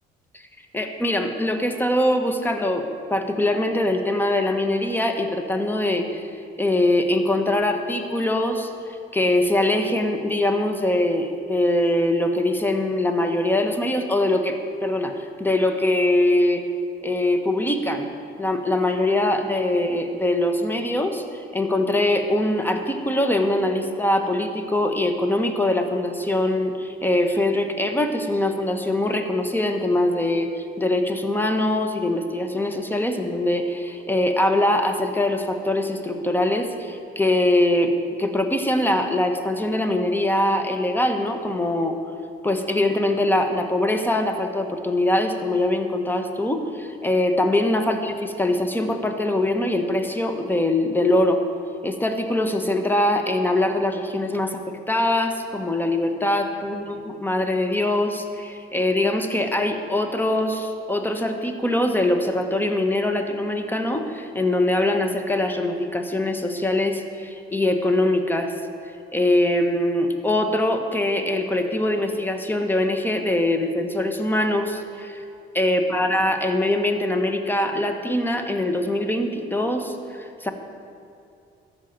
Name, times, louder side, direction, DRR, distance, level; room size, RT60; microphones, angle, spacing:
voice 1, 0.7-6.2 6.6-8.7 9.1-16.6 17.0-18.1 18.4-42.0 42.4-51.4 51.8-68.5 69.1-75.2 75.5-80.5, left 1 dB, 10° left, 6 dB, 1.3 m, -23 dB
13.0 x 6.5 x 9.3 m, 2.5 s
cardioid pair, 90°, 20 cm